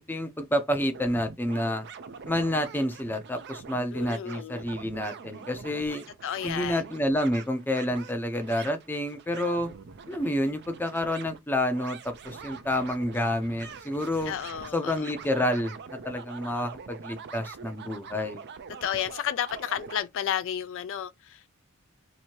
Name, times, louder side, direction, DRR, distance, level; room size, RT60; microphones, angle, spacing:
voice 1, 0.0-1.8 2.2-6.0 6.4-9.7 10.1-14.3 14.7-18.4, left 1 dB, 10° left, 0.6 m, -29 dB
sound 1, 0.7-20.0, right 5 dB, 50° right, 0.5 m, -44 dB
voice 2, 3.9-4.7 6.2-6.8 14.3-15.1 18.8-21.5, left 10 dB, 60° left, 0.4 m, -32 dB
2.9 x 2.7 x 4.4 m
head